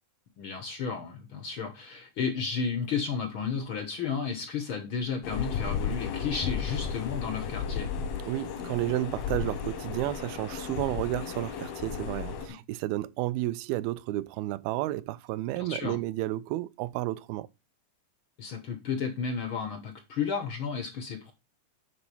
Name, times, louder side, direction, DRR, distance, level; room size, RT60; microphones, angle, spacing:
voice 1, 0.4-7.9 15.6-16.0 18.4-21.3, left 6 dB, 70° left, 1.2 m, -33 dB
sound 1, 5.2-12.5, left 7 dB, 90° left, 3.4 m, -34 dB
voice 2, 8.3-17.5, right 17 dB, 90° right, 2.5 m, -32 dB
9.9 x 4.2 x 5.4 m
omnidirectional pair, 4.2 m